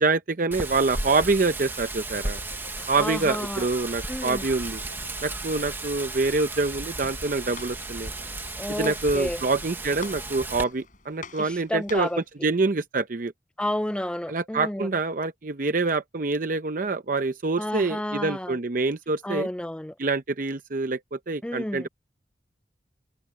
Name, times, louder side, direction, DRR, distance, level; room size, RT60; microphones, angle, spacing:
voice 1, 0.0-2.4 2.9-4.8 5.2-8.1 8.7-13.3 14.3-19.5 20.0-21.9, right 3 dB, 50° right, 0.7 m, -26 dB
Wind, 0.5-10.6, right 2 dB, 10° right, 1.1 m, -35 dB
sound 1, 2.2-10.7, left 3 dB, 70° left, 4.8 m, -53 dB
voice 2, 2.8-3.6 4.1-4.4 8.6-9.4 11.4-12.2 13.6-14.9 17.6-18.5 19.2-19.9 21.4-21.9, left 1 dB, 5° left, 0.4 m, -31 dB
Walk footsteps, 7.2-12.3, left 3 dB, 45° left, 6.6 m, -45 dB
head